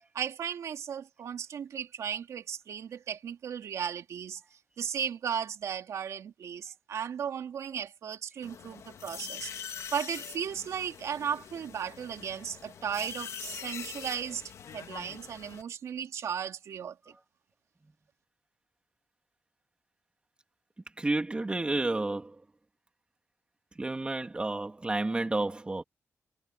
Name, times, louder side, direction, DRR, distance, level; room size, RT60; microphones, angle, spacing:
voice 1, 0.1-4.4 4.8-14.4 14.7-17.0, right 8 dB, 85° right, 3.0 m, -36 dB
sound 1, 8.4-15.6, left 8 dB, 80° left, 2.1 m, -44 dB
voice 2, 21.0-22.3 23.8-25.8, right 2 dB, 20° right, 3.1 m, -30 dB
wide cardioid pair, 115°, 5 cm